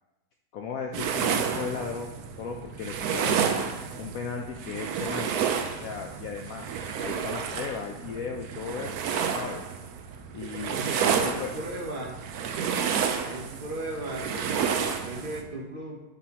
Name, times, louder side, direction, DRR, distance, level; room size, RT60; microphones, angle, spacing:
voice 1, 0.5-3.4 4.0-5.3 5.8-6.7 7.0-9.6 10.3-11.5, left 6 dB, 70° left, 2 dB, 0.9 m, -36 dB
sound 1, 0.9-15.4, right 7 dB, 70° right, 1.1 m, -30 dB
voice 2, 10.7-12.3 13.2-16.0, right 1 dB, 40° right, 0 dB, 0.8 m, -37 dB
10.5 x 5.5 x 2.9 m, 1.1 s
omnidirectional pair, 1.8 m